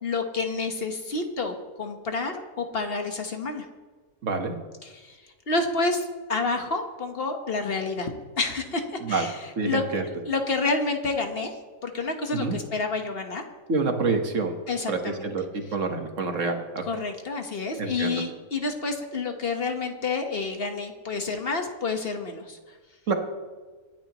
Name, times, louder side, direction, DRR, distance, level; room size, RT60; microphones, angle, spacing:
voice 1, 0.0-3.7 4.8-8.1 8.4-11.6 11.8-13.4 14.7-15.3 15.7-15.8 16.8-22.6, left 3 dB, 45° left, 4 dB, 1.5 m, -29 dB
voice 2, 4.2-4.5 9.0-9.3 9.6-10.0 12.3-12.6 13.7-14.5 14.9-16.8 17.8-18.2 23.1-23.2, right 4 dB, 60° right, 4 dB, 1.7 m, -27 dB
25.5 x 10.0 x 3.0 m, 1.4 s
omnidirectional pair, 1.5 m